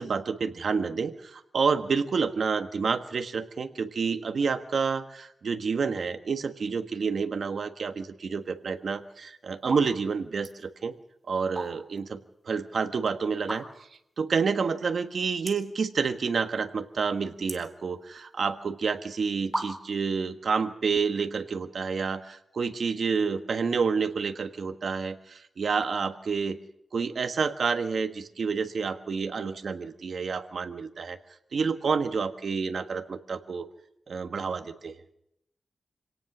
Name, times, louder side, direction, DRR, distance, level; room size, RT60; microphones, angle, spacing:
voice 1, 0.0-10.9 11.3-12.2 12.5-13.6 14.2-26.6 26.9-31.2 31.5-33.7 34.1-35.0, right 5 dB, 60° right, 8 dB, 1.4 m, -29 dB
sound 1, 8.8-9.1 9.6-9.9 10.2-10.6 11.3-12.0 12.4-12.5 13.4-14.0 14.5-14.6 14.8-14.9 15.4-15.8 16.2-16.6 16.9-18.3 19.0-19.1 19.5-20.1, right 1 dB, 10° right, 2.8 m, -36 dB
26.0 x 18.0 x 6.1 m, 0.77 s
wide cardioid pair, 125°, 0 cm